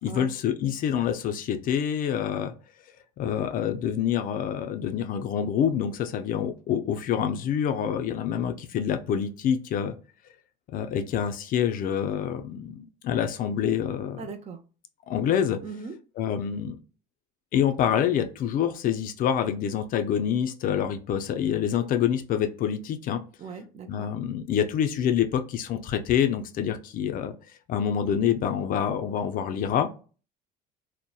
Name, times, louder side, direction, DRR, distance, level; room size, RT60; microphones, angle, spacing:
voice 1, 0.0-2.5 3.2-9.9 10.7-14.2 15.1-15.6 16.2-16.8 17.5-23.2 23.9-27.4 27.7-29.9, left 9 dB, 45° left, 8 dB, 0.4 m, -26 dB
voice 2, 14.2-14.6 15.6-16.0 23.4-24.1, right 5 dB, 35° right, 7 dB, 0.4 m, -39 dB
2.7 x 2.1 x 2.2 m, 0.35 s
supercardioid pair, 95°, 19 cm